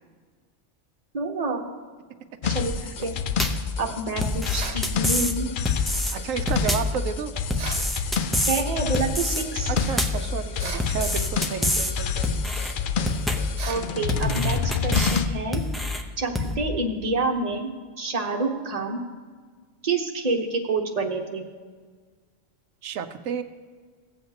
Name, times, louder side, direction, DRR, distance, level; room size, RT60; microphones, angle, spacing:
voice 1, 1.1-1.7 2.5-3.1 3.8-5.5 8.5-9.7 13.7-15.6 16.2-17.7 18.0-19.0 19.8-21.5, right 3 dB, 35° right, 1 dB, 1.1 m, -28 dB
sound 1, 2.4-15.3, left 6 dB, 60° left, 0.5 m, -29 dB
sound 2, 3.4-3.7 4.2-5.4 5.7-6.1 6.5-7.0 7.5-8.6 8.9-9.4 9.8-10.3 10.8-11.9 12.2-12.7 13.1-13.6 14.1-15.2 15.5-16.0 16.4-16.6, left 2 dB, ahead, 0.5 m, -26 dB
sound 3, 4.6-4.9 7.6-7.9 10.6-10.9 13.6-13.9, right 5 dB, 65° right, 1.2 m, -35 dB
voice 2, 6.1-7.4 9.7-12.4 22.8-23.4, right 7 dB, 85° right, 9 dB, 1.0 m, -31 dB
16.5 x 7.9 x 2.8 m, 1.5 s
omnidirectional pair, 1.3 m